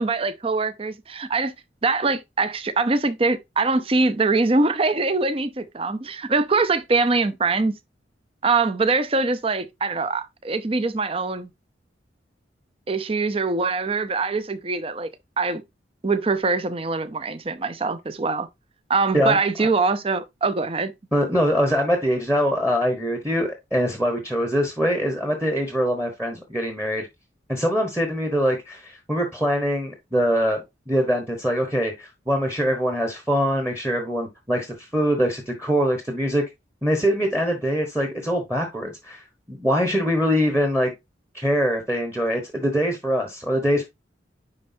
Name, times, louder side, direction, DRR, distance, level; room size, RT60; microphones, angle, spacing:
voice 1, 0.0-1.5 1.8-7.8 8.4-11.5 12.9-15.1 15.4-15.6 16.0-18.5 18.9-20.9, right 3 dB, 30° right, 0.6 m, -23 dB
voice 2, 19.1-19.7 21.1-27.1 27.5-36.4 36.8-40.9 41.3-43.9, equal, 10° right, 1.1 m, -23 dB
9.9 x 4.3 x 2.7 m
head